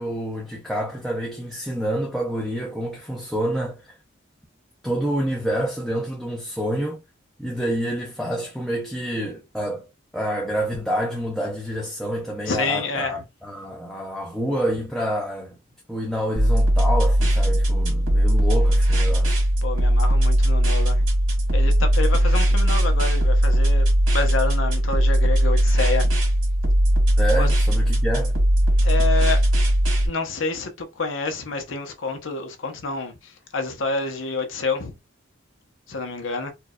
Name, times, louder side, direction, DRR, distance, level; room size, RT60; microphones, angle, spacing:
voice 1, 0.0-4.0 4.8-7.0 7.4-9.9 10.1-15.6 15.9-19.4 27.2-28.3, equal, ahead, 0.5 m, -28 dB
voice 2, 12.5-13.2 19.6-21.1 21.5-23.9 24.1-26.1 27.4-27.5 28.8-29.4 30.0-35.0 35.9-36.5, left 3 dB, 75° left, 0.8 m, -28 dB
sound 1, 16.4-30.1, equal, 90° right, 1.7 m, -19 dB
4.5 x 2.2 x 2.4 m
head